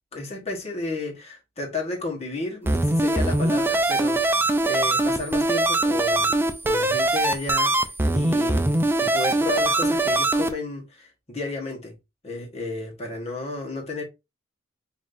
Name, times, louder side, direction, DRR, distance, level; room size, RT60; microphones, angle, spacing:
voice 1, 0.1-11.9 12.2-14.0, left 3 dB, 35° left, 1.2 m, -32 dB
sound 1, 2.7-10.5, right 2 dB, 10° right, 0.3 m, -22 dB
5.1 x 2.7 x 2.5 m
head